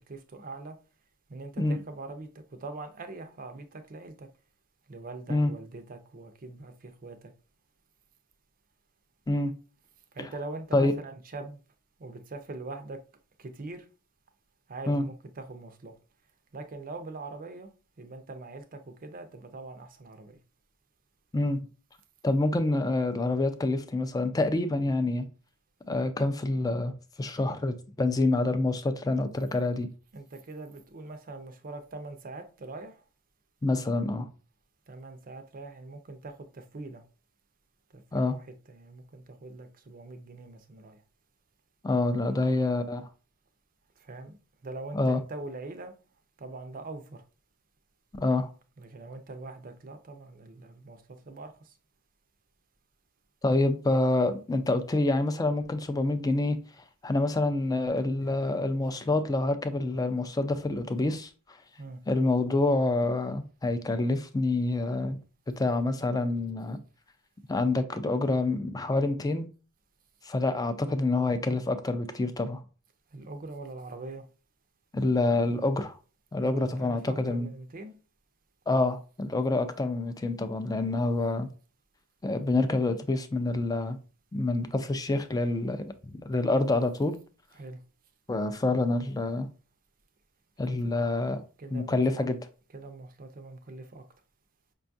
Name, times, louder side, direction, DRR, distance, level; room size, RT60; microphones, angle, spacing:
voice 1, 0.1-0.7 1.3-4.3 4.9-7.3 10.1-11.6 12.0-13.0 13.4-13.9 14.7-16.0 16.5-17.7 18.0-20.4 30.1-33.0 34.9-37.0 37.9-41.0 42.0-42.6 44.0-44.4 44.6-45.9 46.4-47.2 48.8-51.7 61.8-62.0 73.1-74.3 76.4-77.9 87.5-87.8 90.7-90.9 91.6-92.3 92.7-94.0, right 2 dB, 40° right, 0.5 m, -42 dB
voice 2, 22.2-25.3 25.9-26.9 27.2-29.9 33.6-34.3 38.1-38.4 41.8-43.1 44.9-45.2 48.2-48.5 53.4-56.6 57.0-61.3 62.1-65.2 65.6-66.8 67.5-69.5 70.2-72.6 74.9-76.0 76.3-77.5 78.7-81.5 82.2-84.0 84.3-87.2 88.3-89.5 90.6-91.4 91.7-92.4, left 2 dB, 15° left, 0.3 m, -27 dB
5.2 x 2.3 x 2.6 m
head